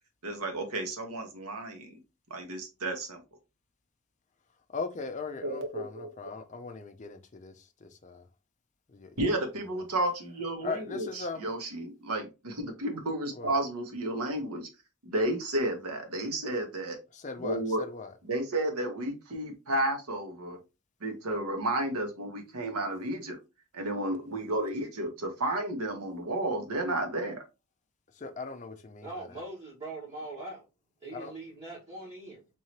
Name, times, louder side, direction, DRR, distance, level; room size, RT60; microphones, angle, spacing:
voice 1, 0.2-2.0 2.3-3.2 5.4-6.1 9.2-14.7 15.0-17.0 17.4-17.8 18.3-20.6 21.0-23.4 23.7-27.4, right 1 dB, 80° right, 1.1 m, -32 dB
voice 2, 4.7-8.3 8.9-9.2 10.6-11.4 13.3-13.6 17.1-18.1 28.1-29.4 31.1-31.3, left 4 dB, 35° left, 0.5 m, -39 dB
voice 3, 29.0-30.7 31.0-32.4, right 2 dB, 30° right, 1.6 m, -41 dB
3.7 x 3.0 x 2.8 m
head